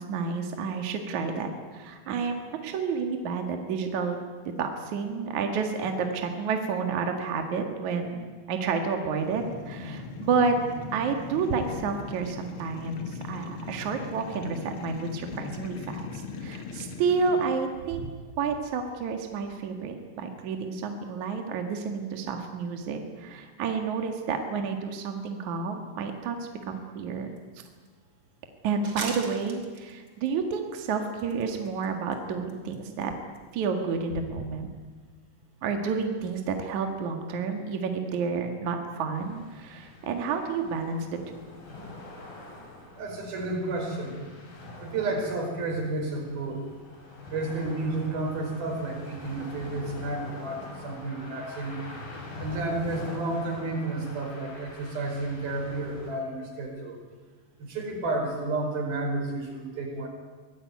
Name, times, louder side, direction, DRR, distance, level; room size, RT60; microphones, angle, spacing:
voice 1, 0.0-4.2 4.6-10.6 10.9-18.1 18.4-27.3 28.6-33.1 33.5-34.7 35.6-41.3, right 5 dB, 60° right, 4 dB, 3.0 m, -30 dB
sound 1, 9.2-17.5, left 4 dB, 45° left, 2.0 m, -39 dB
sound 2, 27.4-27.5 27.8-27.9 28.8-30.3 30.8-31.9 32.1-32.2 32.5-32.8 33.0-33.1 33.3-33.4, right 3 dB, 30° right, 3.4 m, -38 dB
sound 3, 39.1-56.1, left 2 dB, 70° left, 6.9 m, -44 dB
voice 2, 43.0-44.2 44.8-46.6 47.3-51.8 52.4-57.0 57.6-60.1, right 2 dB, 85° right, 2 dB, 6.6 m, -31 dB
24.5 x 18.0 x 9.4 m, 1.4 s
omnidirectional pair, 4.2 m